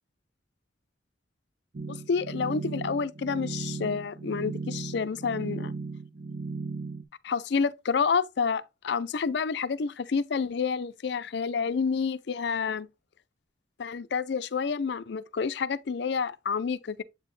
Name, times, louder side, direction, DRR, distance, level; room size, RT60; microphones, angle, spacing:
sound 1, 1.7-7.0, right 4 dB, 55° right, 0.7 m, -36 dB
voice 1, 1.9-5.7 7.2-12.9 13.8-17.0, left 5 dB, 65° left, 0.5 m, -29 dB
8.0 x 4.1 x 3.2 m
head